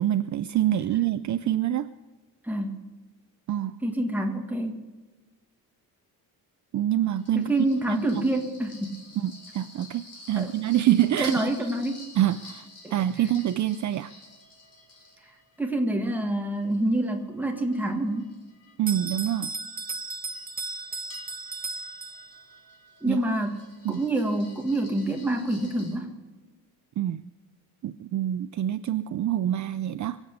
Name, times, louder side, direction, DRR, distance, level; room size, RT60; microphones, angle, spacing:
voice 1, 0.0-1.9 3.5-3.7 6.7-7.5 7.9-8.2 9.2-11.5 12.2-14.1 18.8-19.5 23.1-23.2 23.8-24.0 27.0-27.2 27.8-30.2, right 12 dB, 50° right, 12 dB, 0.5 m, -26 dB
voice 2, 2.4-2.8 3.8-4.9 7.3-9.0 10.4-10.5 11.2-12.0 12.8-12.9 15.6-18.3 23.0-23.6 23.9-26.1, right 1 dB, 5° right, 2 dB, 1.8 m, -27 dB
sound 1, 7.1-15.7 16.2-26.0, left 3 dB, 40° left, 4.4 m, -50 dB
Bell, 18.9-22.6, right 4 dB, 25° right, 0.8 m, -35 dB
23.0 x 8.2 x 6.6 m, 1.2 s
cardioid pair, 165°, 39 cm